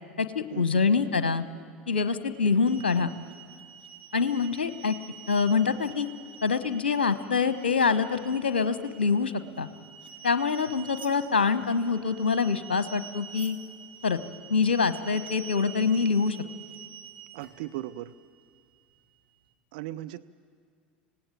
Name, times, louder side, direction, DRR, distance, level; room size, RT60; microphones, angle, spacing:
voice 1, 0.2-1.4 1.9-3.1 4.1-5.0 5.3-6.1 6.4-9.7 10.2-13.6 14.0-14.2 14.5-16.4, left 5 dB, 75° left, 12 dB, 1.1 m, -25 dB
sound 1, 2.6-19.5, right 8 dB, 85° right, 2.7 m, -48 dB
voice 2, 17.3-18.1 19.7-20.2, right 15 dB, 60° right, 10 dB, 0.6 m, -37 dB
25.5 x 17.5 x 9.1 m, 2.1 s
figure-of-eight pair, 75°, 6 cm